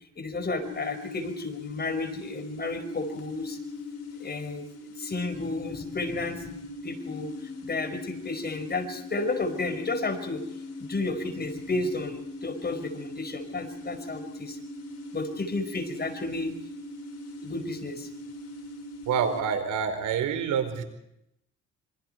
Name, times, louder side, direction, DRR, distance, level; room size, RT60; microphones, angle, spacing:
voice 1, 0.2-3.6 4.2-4.6 5.0-6.6 6.8-10.4 10.8-14.6 15.1-16.5 17.4-18.1, left 2 dB, 30° left, 7 dB, 5.2 m, -32 dB
sound 1, 0.6-19.4, left 2 dB, 55° left, 6.8 m, -40 dB
voice 2, 19.1-20.8, right 7 dB, 80° right, 8 dB, 4.6 m, -27 dB
26.5 x 25.5 x 4.6 m, 0.79 s
cardioid pair, 90°, 30 cm